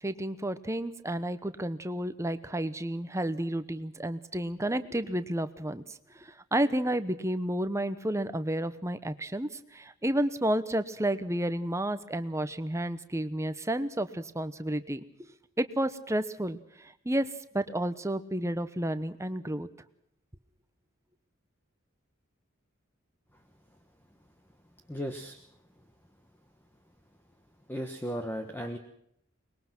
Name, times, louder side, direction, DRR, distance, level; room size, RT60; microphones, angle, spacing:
voice 1, 0.0-15.3 15.6-19.7, right 1 dB, 15° right, 12 dB, 1.0 m, -31 dB
voice 2, 24.9-25.3 27.7-28.8, equal, 10° left, 5 dB, 1.3 m, -35 dB
23.5 x 21.0 x 6.1 m, 0.74 s
head